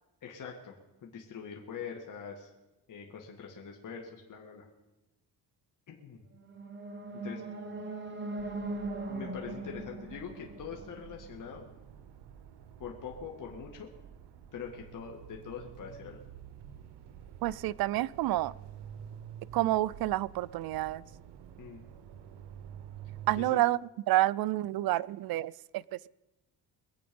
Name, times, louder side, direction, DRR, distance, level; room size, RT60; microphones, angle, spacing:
voice 1, 0.2-0.7 1.0-2.5 2.9-4.7 5.9-6.2 7.1-7.4 9.1-11.7 12.8-13.9 14.5-16.2 21.6-21.8 23.4-23.6, left 6 dB, 50° left, 1 dB, 2.1 m, -43 dB
sound 1, 6.3-11.4, right 2 dB, 30° right, 1.3 m, -40 dB
sound 2, 8.4-23.5, right 9 dB, 85° right, 1.0 m, -49 dB
voice 2, 17.4-18.5 19.5-21.0 23.3-23.8 24.1-26.1, right 16 dB, 65° right, 20 dB, 0.5 m, -29 dB
23.0 x 8.6 x 5.3 m, 1.0 s
cardioid pair, 110°, 40 cm